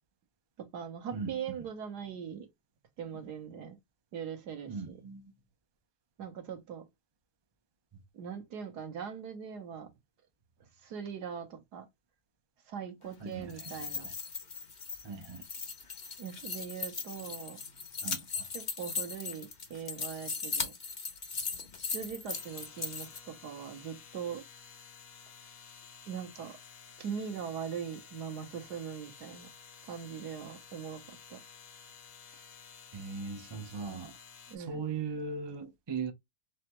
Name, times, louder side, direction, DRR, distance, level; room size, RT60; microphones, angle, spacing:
voice 1, 0.6-2.5 3.0-3.8 4.1-5.0 6.2-6.9 8.1-9.9 10.6-11.9 12.7-14.1 16.2-17.6 18.5-20.8 21.9-24.5 26.1-26.6 27.0-29.5 29.8-31.4 34.5-34.8, right 7 dB, 85° right, 1.7 m, -41 dB
voice 2, 1.1-1.6 4.7-5.2 13.2-13.8 15.0-15.4 18.0-18.5 32.9-34.2 34.6-36.1, right 5 dB, 25° right, 0.5 m, -39 dB
sound 1, 13.4-23.2, left 5 dB, 35° left, 0.9 m, -38 dB
sound 2, 22.3-34.6, left 6 dB, 65° left, 1.5 m, -53 dB
4.1 x 3.3 x 3.0 m
omnidirectional pair, 1.7 m